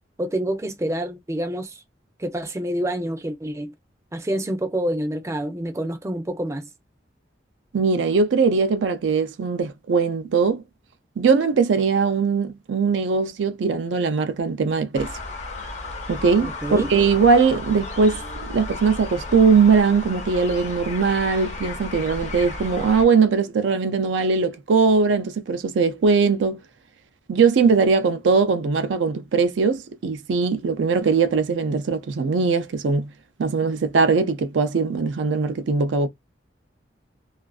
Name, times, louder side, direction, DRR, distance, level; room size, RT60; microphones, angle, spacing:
voice 1, 0.2-1.8 2.2-3.7 4.1-6.7 16.3-16.9, right 1 dB, 15° right, 0.4 m, -27 dB
voice 2, 7.7-10.6 11.2-15.1 16.1-18.2 18.5-26.6 27.3-33.1 33.4-36.1, right 5 dB, 85° right, 0.4 m, -20 dB
sound 1, 14.9-23.1, left 2 dB, 40° left, 0.6 m, -34 dB
2.4 x 2.3 x 2.3 m
head